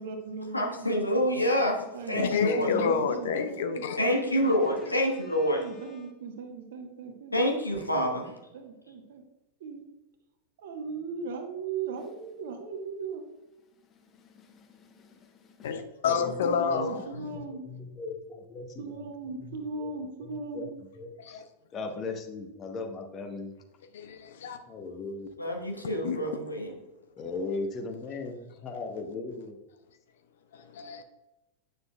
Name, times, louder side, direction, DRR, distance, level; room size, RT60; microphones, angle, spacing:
voice 1, 0.0-1.2 1.9-3.3 3.6-4.4 4.8-5.0 5.5-7.3 7.6-7.7 8.1-9.2 9.6-9.8 10.6-13.2 16.5-17.6 18.8-20.7, right 4 dB, 55° right, 5 dB, 1.1 m, -38 dB
voice 2, 0.5-2.7 4.0-5.6 7.3-8.3 25.4-26.7, equal, 85° left, 1 dB, 1.2 m, -27 dB
voice 3, 2.1-4.0 15.6-17.3 21.3-21.4 23.9-24.6 26.0-26.2 30.5-31.0, left 5 dB, 60° left, 8 dB, 0.6 m, -29 dB
voice 4, 5.1-6.1 13.9-15.7 16.1-16.8 17.3-19.0 19.5-19.9 20.2-20.7 21.0-21.4 21.7-23.5 24.7-25.5 27.1-29.6, left 3 dB, 25° left, 4 dB, 1.0 m, -39 dB
8.9 x 6.6 x 2.3 m, 0.97 s
figure-of-eight pair, 90°, 0 cm